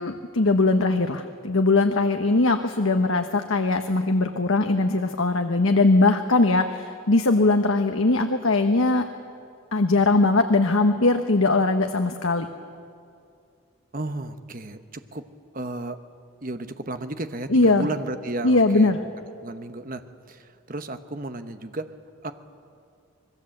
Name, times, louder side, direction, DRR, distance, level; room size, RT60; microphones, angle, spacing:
voice 1, 0.0-9.1 9.7-12.5 17.5-17.9 18.4-19.0, left 2 dB, 75° left, 6 dB, 1.1 m, -20 dB
voice 2, 13.9-15.2 15.5-16.0 16.4-19.0 19.4-20.0 20.3-21.9 22.2-22.3, right 2 dB, 40° right, 9 dB, 1.1 m, -33 dB
26.0 x 21.0 x 7.8 m, 2.4 s
head